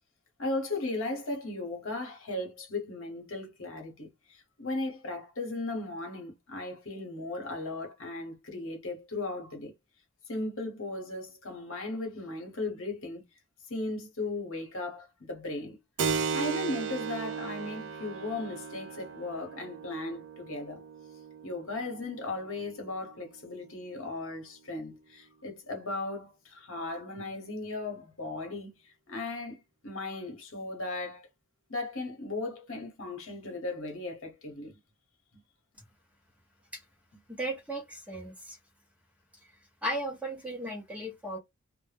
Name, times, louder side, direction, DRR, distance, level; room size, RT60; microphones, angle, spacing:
voice 1, 0.4-9.7 10.3-13.2 13.7-15.8 16.3-20.8 21.4-31.3 31.7-34.8, left 2 dB, 60° left, 0.9 m, -37 dB
Keyboard (musical), 16.0-24.2, right 5 dB, 55° right, 0.4 m, -37 dB
voice 2, 37.3-38.6 39.4-39.5 39.8-41.4, right 1 dB, 5° right, 0.6 m, -36 dB
2.1 x 2.0 x 3.2 m
head